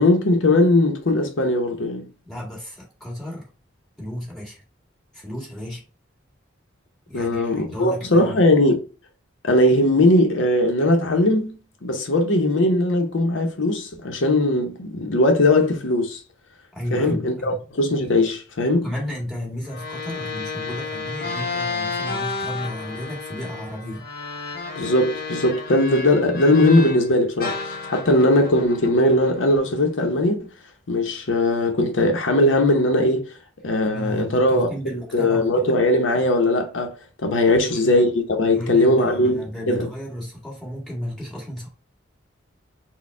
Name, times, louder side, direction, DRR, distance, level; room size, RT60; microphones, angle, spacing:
voice 1, 0.0-2.1 7.1-8.8 9.4-16.2 16.9-18.9 24.8-30.5 30.9-33.2 33.6-34.7 35.1-36.9 37.2-39.9, left 1 dB, 80° left, 0.8 m, -19 dB
voice 2, 2.2-3.5 4.0-4.6 5.1-5.8 7.1-8.4 16.7-17.6 18.7-24.1 33.8-35.7 37.5-38.0 38.5-41.7, equal, ahead, 1.9 m, -33 dB
sound 1, 19.7-27.1 27.4-29.8, left 3 dB, 50° left, 1.0 m, -32 dB
4.2 x 2.3 x 4.3 m
head